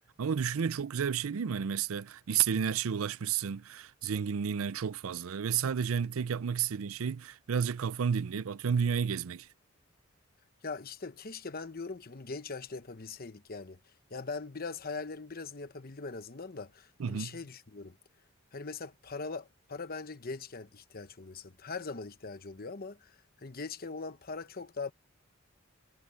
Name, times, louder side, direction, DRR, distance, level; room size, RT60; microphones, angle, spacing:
voice 1, 0.2-9.5 17.0-17.4, right 7 dB, 85° right, 0.5 m, -31 dB
voice 2, 10.6-13.8 14.1-18.0 18.5-23.1 23.4-24.9, left 4 dB, 45° left, 1.0 m, -41 dB
head